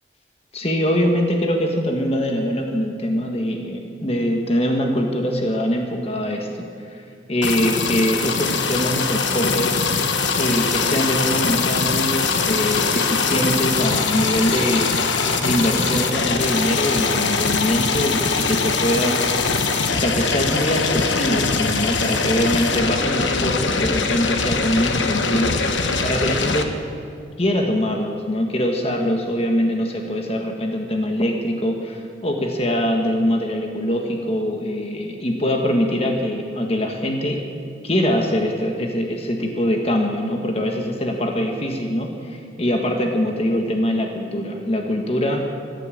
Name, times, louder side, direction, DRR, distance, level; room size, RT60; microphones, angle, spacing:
voice 1, 0.5-7.0 7.3-9.8 10.3-14.9 15.4-19.4 19.9-25.6 26.0-26.7 27.4-37.4 37.8-45.4, equal, 35° left, 2 dB, 1.5 m, -23 dB
sound 1, 7.4-26.6, left 4 dB, 80° left, 1.2 m, -22 dB
15.0 x 11.0 x 8.6 m, 2.4 s
head